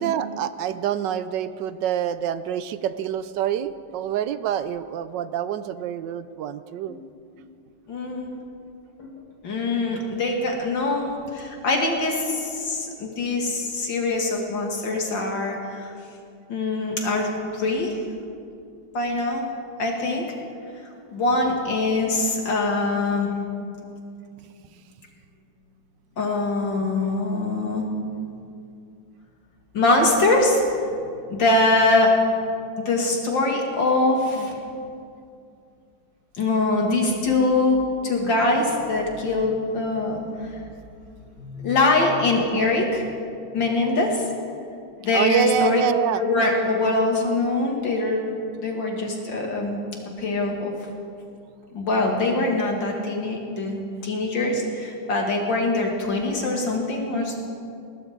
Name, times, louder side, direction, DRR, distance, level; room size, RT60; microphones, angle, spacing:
voice 1, 0.0-7.0 45.1-46.2, right 9 dB, 75° right, 13 dB, 1.2 m, -26 dB
voice 2, 7.9-8.3 9.0-9.1 9.4-15.9 16.5-18.0 18.9-19.4 19.8-20.2 21.1-23.3 26.2-27.9 29.7-30.6 31.3-32.2 32.8-34.5 36.4-37.8 38.0-40.6 41.4-43.1 43.5-44.3 45.0-45.8 46.2-49.8 50.2-50.7 51.7-57.4, left 2 dB, 75° left, 0 dB, 2.9 m, -23 dB
20.0 x 19.0 x 3.7 m, 2.4 s
omnidirectional pair, 2.1 m